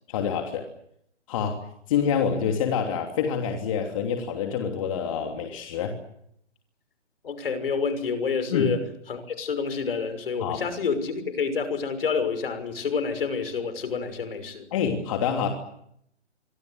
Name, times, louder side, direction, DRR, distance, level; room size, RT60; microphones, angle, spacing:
voice 1, 0.1-0.6 1.3-1.6 1.9-5.9 8.5-8.7 10.4-10.6 14.7-15.5, left 7 dB, 30° left, 3 dB, 3.1 m, -26 dB
voice 2, 7.2-8.8 9.1-14.7, left 5 dB, 55° left, 10 dB, 6.0 m, -28 dB
26.0 x 24.5 x 8.0 m, 0.72 s
hypercardioid pair, 160°, 35 cm